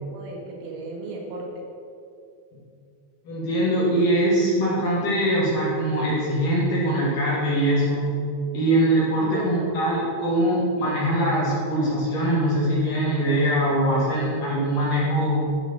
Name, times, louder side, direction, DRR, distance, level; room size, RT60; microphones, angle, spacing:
voice 1, 0.0-1.5 9.2-9.8, right 2 dB, 75° right, 0 dB, 4.0 m, -34 dB
voice 2, 3.2-8.0 8.5-15.4, right 1 dB, 50° left, -7 dB, 3.1 m, -22 dB
14.0 x 5.9 x 5.7 m, 2.5 s
omnidirectional pair, 5.9 m